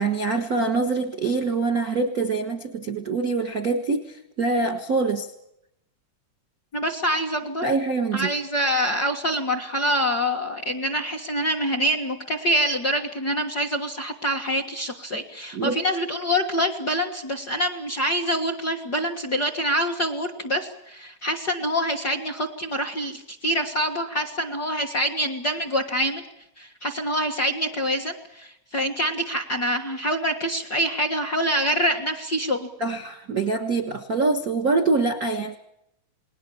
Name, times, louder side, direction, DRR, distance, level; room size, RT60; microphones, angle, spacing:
voice 1, 0.0-5.3 7.6-8.3 15.5-15.8 32.8-35.6, right 3 dB, 50° right, 7 dB, 1.1 m, -24 dB
voice 2, 6.7-7.6 8.1-26.2 26.6-32.7, equal, 45° left, 6 dB, 1.4 m, -25 dB
28.5 x 20.5 x 7.1 m, 0.81 s
omnidirectional pair, 4.0 m